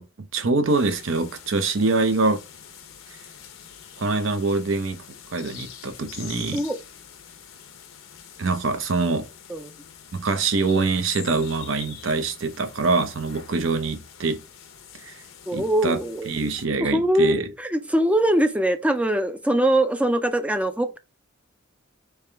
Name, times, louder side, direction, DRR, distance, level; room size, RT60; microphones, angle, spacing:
voice 1, 0.0-2.4 3.1-3.2 4.0-5.0 5.3-6.6 8.4-9.3 10.1-14.4 15.0-15.2 15.5-16.0 16.3-17.5, right 3 dB, 70° right, 0.6 m, -24 dB
sound 1, 0.7-16.7, left 8 dB, 80° left, 0.7 m, -45 dB
voice 2, 15.5-16.3 16.8-21.0, right 1 dB, 5° right, 0.4 m, -22 dB
3.4 x 3.3 x 3.4 m
head